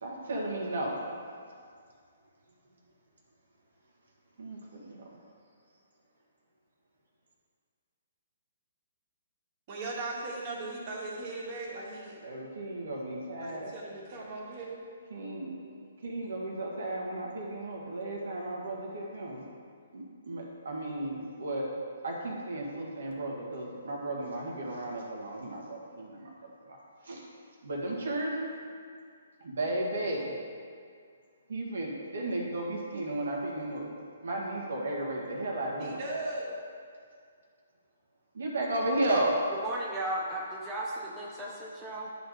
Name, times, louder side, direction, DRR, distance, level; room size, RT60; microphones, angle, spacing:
voice 1, 0.0-1.0 4.4-5.0 12.2-13.7 15.1-15.5 16.0-19.4 19.9-21.7 22.0-26.3 26.7-26.8 27.0-27.2 27.6-28.5 29.4-30.3 31.5-33.9 34.2-36.0 38.3-39.3, right 1 dB, 70° right, -2 dB, 1.7 m, -34 dB
voice 2, 9.7-12.2 13.4-14.8 35.7-36.6, right 2 dB, 40° right, -4 dB, 2.1 m, -38 dB
voice 3, 39.5-42.1, right 1 dB, 15° right, -5 dB, 1.0 m, -35 dB
11.0 x 4.1 x 5.0 m, 2.2 s
hypercardioid pair, 140°, 0 cm